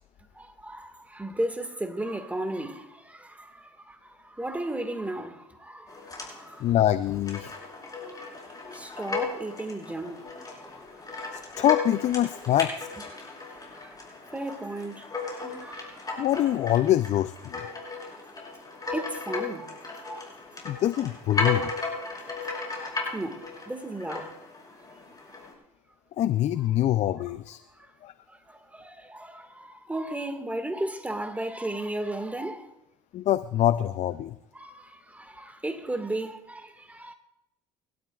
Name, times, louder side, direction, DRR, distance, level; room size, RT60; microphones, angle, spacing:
voice 1, 0.4-6.6 8.1-8.3 8.7-10.3 12.6-12.7 13.7-14.0 14.3-16.1 18.8-19.8 20.0-20.3 22.7-24.3 28.3-32.7 34.5-37.1, right 1 dB, 10° right, 2.0 m, -35 dB
sound 1, 5.9-25.5, left 3 dB, 25° left, 6.6 m, -36 dB
voice 2, 6.6-7.5 11.6-12.7 16.2-17.6 20.6-21.7 26.2-27.6 28.0-28.1 33.1-34.3, left 12 dB, 55° left, 0.6 m, -24 dB
29.0 x 13.0 x 2.5 m
hypercardioid pair, 70°, 14 cm